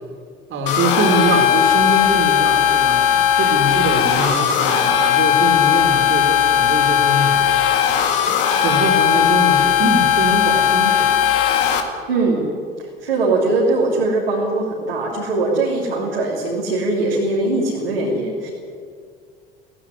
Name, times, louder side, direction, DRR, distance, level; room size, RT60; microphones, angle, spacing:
voice 1, 0.5-7.4 8.2-11.1, right 2 dB, 45° right, 4 dB, 3.5 m, -23 dB
sound 1, 0.7-11.8, left 9 dB, 65° left, 2.1 m, -17 dB
voice 2, 12.1-12.4 12.8-18.5, right 2 dB, 80° right, -4 dB, 3.3 m, -21 dB
16.5 x 16.0 x 9.8 m, 2.1 s
figure-of-eight pair, 65°, 29 cm